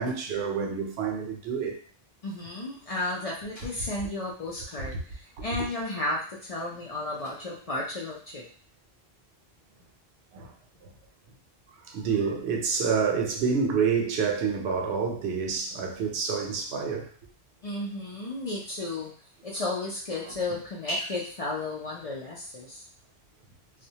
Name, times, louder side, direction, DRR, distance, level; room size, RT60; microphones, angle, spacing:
voice 1, 0.0-1.8 10.3-10.5 11.8-17.1, right 6 dB, 85° right, 2 dB, 0.8 m, -28 dB
voice 2, 2.2-8.4 17.6-19.1 19.4-22.8, left 2 dB, 50° left, -4 dB, 0.5 m, -33 dB
2.2 x 2.1 x 2.7 m, 0.41 s
omnidirectional pair, 1.0 m